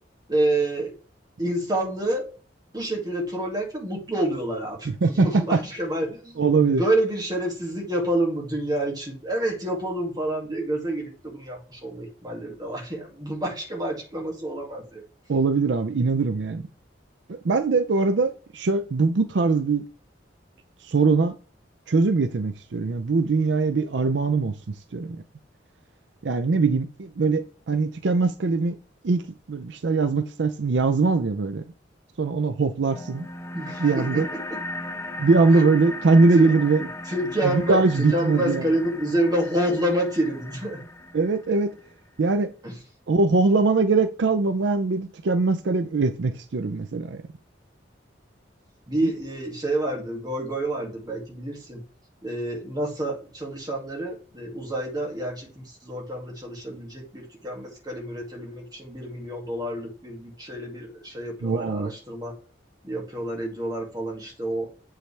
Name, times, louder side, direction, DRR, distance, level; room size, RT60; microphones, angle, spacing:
voice 1, 0.3-0.9 1.4-2.3 2.7-15.0 33.5-34.6 35.5-35.7 36.3-36.5 37.1-40.8 42.6-42.7 48.9-51.8 52.2-62.3 62.8-64.7, right 1 dB, 25° right, 2.3 m, -28 dB
voice 2, 5.0-5.6 6.4-6.8 15.3-16.7 17.3-19.9 20.8-21.3 21.9-25.2 26.2-28.8 29.0-29.2 29.5-31.6 32.2-33.3 33.8-34.3 35.2-36.9 37.4-38.7 41.1-41.7 42.2-42.5 43.1-47.2 61.4-61.9, right 3 dB, 70° right, 0.5 m, -22 dB
sound 1, 32.9-41.9, left 1 dB, 15° left, 0.8 m, -37 dB
7.5 x 5.6 x 3.3 m
head